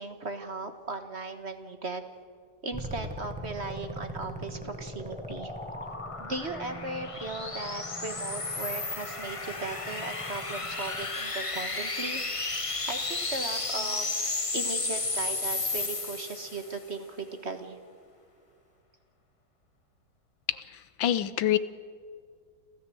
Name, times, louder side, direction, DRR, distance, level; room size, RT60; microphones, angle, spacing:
voice 1, 0.0-2.0 2.6-5.5 6.2-12.2 12.9-14.1 14.5-17.8, right 3 dB, 35° right, 8 dB, 1.5 m, -37 dB
sound 1, 2.7-11.3 13.5-18.1, equal, 5° right, 1.0 m, -44 dB
sound 2, 4.1-16.8, left 3 dB, 20° left, 1.1 m, -34 dB
voice 2, 21.0-21.6, left 11 dB, 90° left, 14 dB, 1.7 m, -25 dB
29.5 x 13.5 x 7.7 m, 2.1 s
omnidirectional pair, 2.1 m